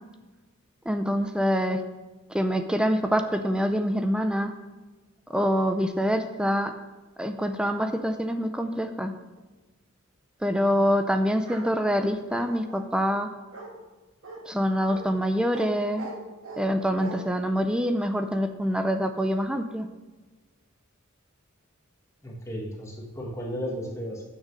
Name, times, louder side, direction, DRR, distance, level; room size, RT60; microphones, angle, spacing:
voice 1, 0.9-1.8 2.3-4.5 5.3-6.7 7.2-9.1 10.4-13.3 14.5-16.1 16.6-19.9, equal, 5° right, 7 dB, 0.4 m, -25 dB
Bark, 11.4-11.7 12.3-12.8 13.5-13.7 14.2-14.4 14.9-15.1 15.5-15.7 16.0-16.6 17.0-17.1, right 3 dB, 75° right, 1.9 m, -40 dB
voice 2, 22.2-24.2, equal, 15° left, -1 dB, 1.5 m, -34 dB
6.6 x 6.2 x 6.2 m, 1.2 s
head